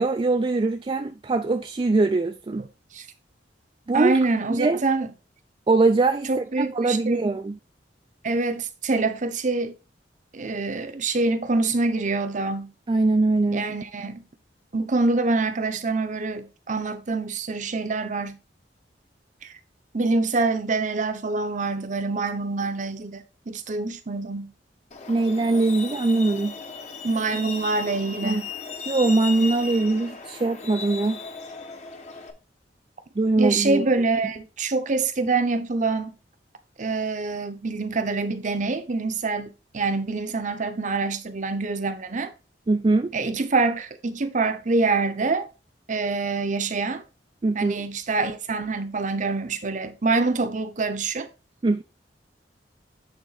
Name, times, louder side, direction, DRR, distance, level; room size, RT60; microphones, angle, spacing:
voice 1, 0.0-2.7 3.9-4.2 4.5-4.8 5.7-7.6 12.9-13.7 25.1-26.6 28.2-28.4 28.9-31.2 33.2-33.8 42.7-43.1 47.4-47.8 51.6-51.8, right 3 dB, 30° right, 0.4 m, -22 dB
voice 2, 3.9-5.1 6.3-7.3 8.2-9.7 10.3-12.7 13.5-14.2 14.7-18.4 19.4-19.5 19.9-24.5 27.0-28.5 33.4-36.1 36.8-42.3 43.1-45.5 45.9-47.0 47.5-51.3, right 3 dB, 45° right, 0.8 m, -25 dB
Truck, 24.9-32.3, left 4 dB, 40° left, 1.0 m, -36 dB
8.8 x 3.7 x 4.0 m
head